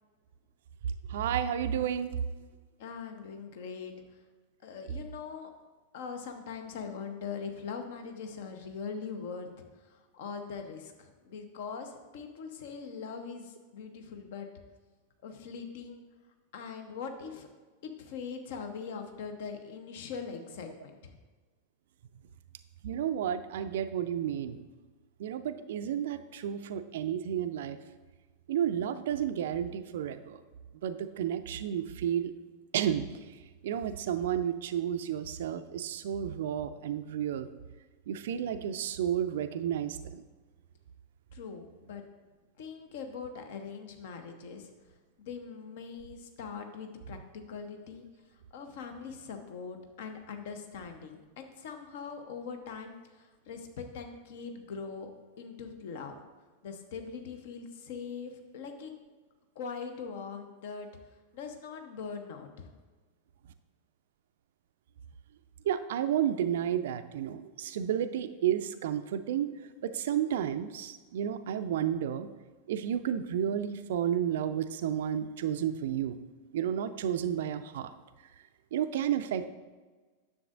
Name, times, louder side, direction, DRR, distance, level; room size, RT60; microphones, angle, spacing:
voice 1, 1.1-2.2 22.8-24.6 25.2-27.8 28.5-30.4 30.8-32.3 32.7-33.1 33.6-37.5 38.1-40.2 65.7-69.5 69.8-72.3 72.7-76.2 76.5-77.9 78.7-79.5, right 9 dB, 55° right, 11 dB, 0.4 m, -31 dB
voice 2, 2.8-3.9 4.6-5.5 5.9-9.5 9.9-14.5 15.2-16.0 16.5-17.5 17.8-21.1 41.3-42.0 42.6-44.7 45.2-48.1 48.5-55.1 55.4-56.1 56.6-58.9 59.6-60.9 61.3-62.7, left 5 dB, 55° left, 6 dB, 0.9 m, -41 dB
9.6 x 7.1 x 2.5 m, 1.3 s
figure-of-eight pair, 90°, 0 cm